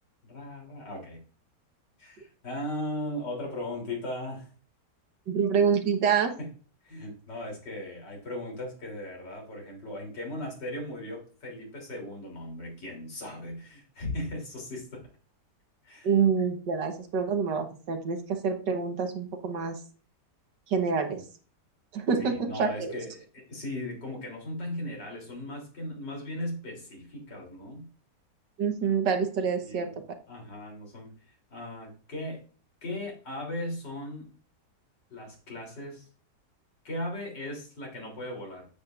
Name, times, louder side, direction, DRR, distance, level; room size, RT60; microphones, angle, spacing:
voice 1, 0.3-1.2 2.0-4.5 6.4-6.5 6.8-15.1 15.8-16.1 22.2-27.9 29.6-30.0 30.3-32.4 32.8-34.3 35.1-36.1 36.8-38.7, left 1 dB, 80° left, -1 dB, 4.1 m, -37 dB
voice 2, 5.3-6.3 16.0-19.8 20.7-21.2 21.9-23.0 28.6-29.9, right 6 dB, 85° right, 6 dB, 1.9 m, -27 dB
9.3 x 7.9 x 2.5 m, 0.39 s
omnidirectional pair, 1.8 m